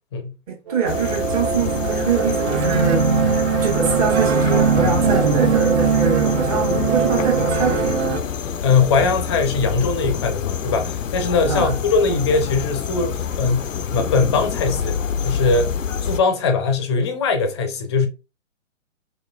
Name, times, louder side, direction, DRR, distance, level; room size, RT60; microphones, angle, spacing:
voice 1, 0.5-3.1 3.6-8.1 11.5-11.8, right 6 dB, 30° right, 1.1 m, -24 dB
sound 1, 0.7-8.2, right 6 dB, 55° right, 1.0 m, -21 dB
sound 2, 0.9-16.2, left 7 dB, 85° left, 0.5 m, -27 dB
voice 2, 8.6-15.0 15.2-15.7 16.0-18.1, left 4 dB, 20° left, 0.5 m, -21 dB
4.2 x 3.0 x 2.3 m
figure-of-eight pair, 125°, 37 cm